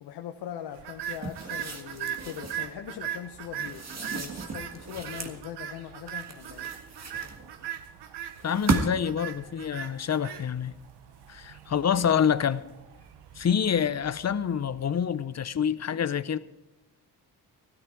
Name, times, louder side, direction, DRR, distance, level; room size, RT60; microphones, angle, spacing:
voice 1, 0.0-6.9, left 10 dB, 75° left, 0.9 m, -41 dB
sound 1, 0.8-15.1, right 10 dB, 80° right, 1.1 m, -40 dB
sound 2, 1.0-2.7 3.6-5.4 6.1-7.7 8.3-9.2, right 3 dB, 40° right, 1.7 m, -34 dB
voice 2, 8.4-10.8 11.3-12.7 13.4-16.4, left 8 dB, 40° left, 0.7 m, -27 dB
13.0 x 13.0 x 4.7 m
supercardioid pair, 60°, 40 cm